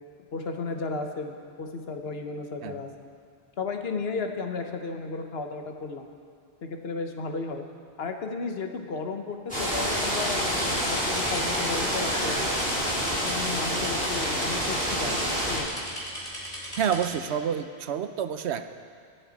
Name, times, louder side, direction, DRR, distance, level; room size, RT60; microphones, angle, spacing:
voice 1, 0.3-3.1 3.6-6.1 6.6-7.6 8.0-12.5 13.0-15.2 15.5-15.7, left 4 dB, 65° left, 5 dB, 1.2 m, -34 dB
sound 1, 9.5-15.6, equal, 5° left, 3.5 m, -27 dB
sound 2, 10.2-17.1, equal, 50° left, 2.7 m, -37 dB
voice 2, 16.8-18.6, right 8 dB, 80° right, 9 dB, 0.9 m, -28 dB
23.0 x 7.8 x 4.0 m, 2.3 s
omnidirectional pair, 1.1 m